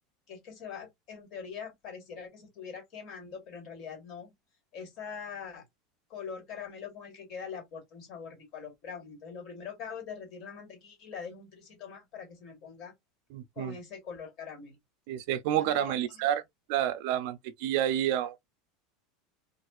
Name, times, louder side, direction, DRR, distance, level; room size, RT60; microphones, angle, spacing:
voice 1, 0.3-4.3 4.7-5.6 6.1-12.9 13.6-14.8 15.5-16.2, left 6 dB, 35° left, 1.8 m, -43 dB
voice 2, 13.3-13.8 15.1-16.4 16.7-18.4, right 11 dB, 50° right, 0.4 m, -29 dB
4.2 x 2.5 x 2.4 m
supercardioid pair, 180°, 0 cm